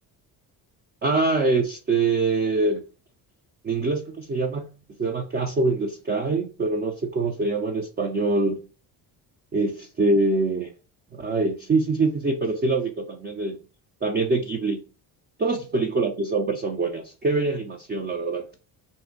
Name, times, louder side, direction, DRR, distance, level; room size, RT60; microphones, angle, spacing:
voice 1, 1.0-2.8 3.6-4.7 5.0-8.6 9.5-10.7 11.1-13.6 14.0-14.8 15.4-18.5, right 3 dB, 25° right, 0.4 m, -24 dB
2.6 x 2.1 x 3.7 m
supercardioid pair, 65°, 48 cm